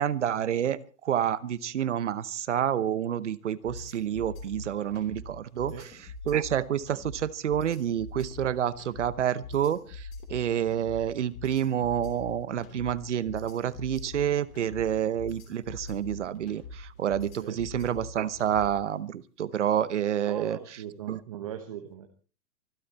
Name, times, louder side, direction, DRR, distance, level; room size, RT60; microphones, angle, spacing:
voice 1, 0.0-5.9 6.3-20.6 21.1-21.2, right 10 dB, 50° right, 18 dB, 1.0 m, -28 dB
sound 1, 3.6-18.9, left 3 dB, 20° left, 3.1 m, -43 dB
voice 2, 20.2-22.1, right 10 dB, 20° right, 6 dB, 1.0 m, -39 dB
24.5 x 12.5 x 4.2 m, 0.37 s
hypercardioid pair, 180°, 47 cm